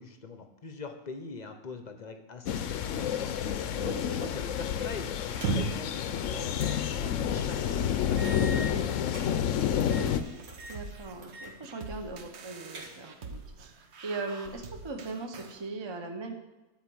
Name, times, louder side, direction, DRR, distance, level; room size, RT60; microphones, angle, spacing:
voice 1, 0.0-10.4, left 4 dB, 40° left, 6 dB, 0.7 m, -43 dB
sound 1, 2.5-10.2, left 9 dB, 65° left, 0.9 m, -29 dB
voice 2, 3.8-4.3 10.7-16.3, right 3 dB, 25° right, 4 dB, 0.6 m, -39 dB
sound 2, 5.3-5.9 6.6-6.8 7.2-7.3 8.2-9.3 9.8-10.2 10.5-10.8 11.2-11.5 11.9-12.0 12.4-13.2, right 3 dB, 70° right, 2.0 m, -36 dB
sound 3, 10.0-15.6, right 4 dB, 55° right, 1.0 m, -46 dB
10.5 x 4.5 x 7.7 m, 1.1 s
omnidirectional pair, 1.6 m